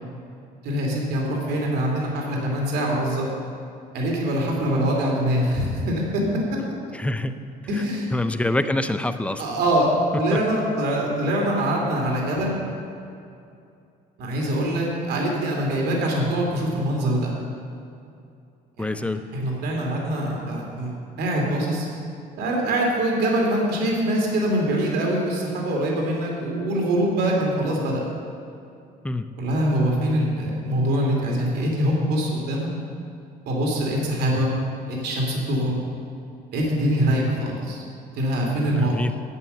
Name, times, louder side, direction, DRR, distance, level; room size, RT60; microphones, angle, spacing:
voice 1, 0.6-3.3 3.9-6.2 7.7-8.1 9.4-9.9 10.2-12.6 14.2-17.3 19.4-20.9 21.2-21.9 22.4-28.0 29.4-32.7 33.5-34.5 34.9-35.8 36.5-37.8 38.1-38.9, right 1 dB, 75° right, -1 dB, 2.7 m, -23 dB
voice 2, 6.9-7.4 7.8-7.9 8.1-9.4 10.3-10.4 18.8-19.2 29.0-29.3 38.7-39.1, left 2 dB, 5° left, 9 dB, 0.6 m, -26 dB
11.0 x 8.2 x 6.8 m, 2.5 s
cardioid pair, 110°, 17 cm